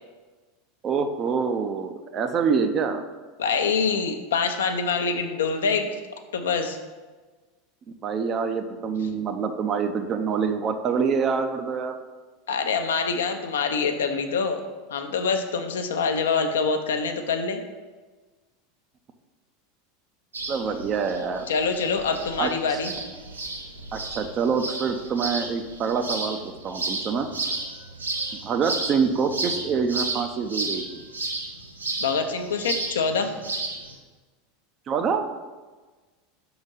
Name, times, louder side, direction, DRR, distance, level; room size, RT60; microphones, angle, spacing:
voice 1, 0.8-3.0 8.0-12.0 20.5-21.5 22.4-22.8 23.9-27.3 28.3-31.0 34.9-35.3, right 5 dB, 35° right, 7 dB, 0.6 m, -26 dB
voice 2, 3.4-5.9 6.3-6.8 12.5-14.6 14.9-17.6 21.5-22.9 32.0-33.3, left 5 dB, 70° left, 6 dB, 0.6 m, -25 dB
sound 1, 20.3-34.0, right 3 dB, 85° right, 0.7 m, -33 dB
5.1 x 3.9 x 5.5 m, 1.3 s
figure-of-eight pair, 80°, 0 cm